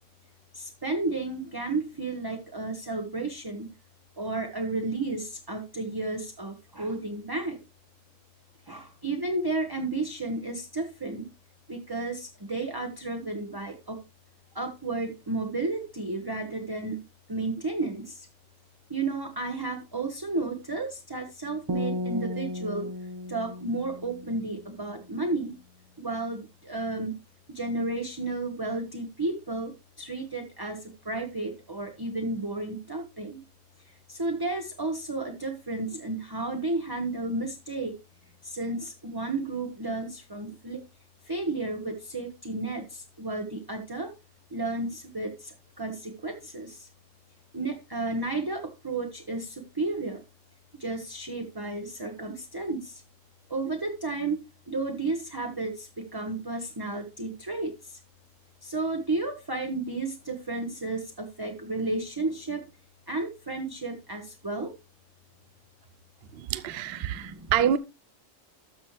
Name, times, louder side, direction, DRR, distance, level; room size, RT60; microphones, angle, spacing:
voice 1, 0.5-3.7 4.2-7.6 8.7-11.3 11.7-14.0 14.5-17.0 17.3-18.3 18.9-22.9 23.3-25.5 26.0-27.1 27.5-30.8 31.0-33.4 34.1-37.9 38.4-40.8 41.3-44.1 44.5-46.9 47.5-50.2 50.8-52.9 53.5-54.4 54.7-57.7 58.6-62.6 63.1-64.7 67.1-67.5, right 2 dB, 20° right, 1.0 m, -32 dB
sound 1, 21.7-24.9, left 2 dB, 35° right, 0.4 m, -35 dB
voice 2, 66.3-67.8, right 9 dB, 60° right, 0.8 m, -27 dB
13.0 x 6.2 x 3.1 m
omnidirectional pair, 1.3 m